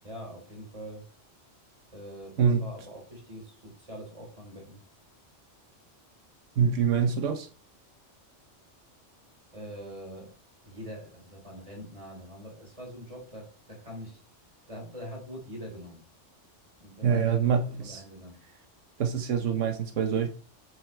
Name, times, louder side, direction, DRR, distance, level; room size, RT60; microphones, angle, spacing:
voice 1, 0.0-1.0 1.9-4.8 6.9-7.2 9.5-10.3 10.6-14.2 14.7-16.0 16.8-18.4, equal, 25° right, -2 dB, 4.2 m, -43 dB
voice 2, 6.6-7.5 17.0-18.0 19.0-20.3, right 7 dB, 85° right, 5 dB, 1.2 m, -25 dB
8.2 x 7.7 x 3.3 m, 0.38 s
omnidirectional pair, 1.2 m